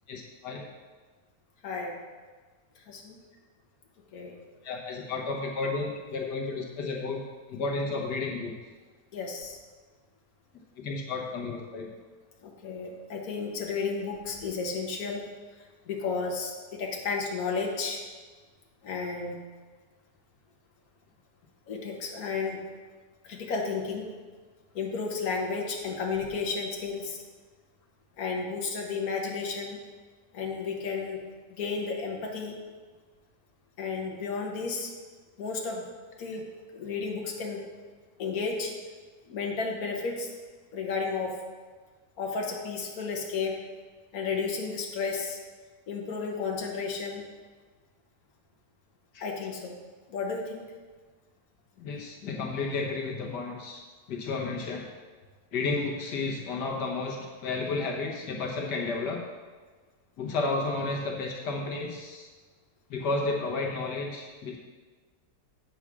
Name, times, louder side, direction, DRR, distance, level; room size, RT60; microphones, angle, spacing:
voice 1, 0.1-0.6 4.6-7.2 7.5-8.6 10.8-11.9 49.1-49.2 51.8-53.8 54.1-54.9 55.5-59.2 60.2-62.3 62.9-64.6, left 3 dB, 80° left, -1 dB, 1.6 m, -32 dB
voice 2, 1.6-1.9 2.9-3.2 4.1-4.3 9.1-9.6 12.4-15.2 15.9-18.0 18.8-19.4 21.7-22.6 23.2-24.1 24.7-27.2 28.2-29.8 30.3-31.2 31.6-32.6 33.8-34.9 35.4-35.8 36.2-36.4 36.7-37.6 38.2-38.7 39.3-40.3 40.7-41.3 42.2-43.5 44.1-45.4 45.9-47.2 49.2-49.7 50.1-50.6, left 4 dB, 60° left, 0 dB, 1.6 m, -32 dB
8.1 x 4.8 x 6.0 m, 1.4 s
omnidirectional pair, 1.8 m